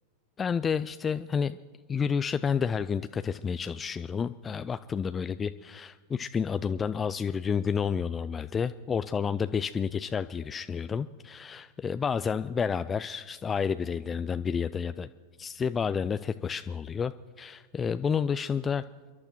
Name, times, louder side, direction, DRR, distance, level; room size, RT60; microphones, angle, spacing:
voice 1, 0.4-1.6 1.9-15.1 15.4-17.1 17.4-18.8, left 6 dB, 20° left, 12 dB, 0.3 m, -30 dB
29.5 x 11.5 x 3.0 m, 1.4 s
figure-of-eight pair, 90°, 0 cm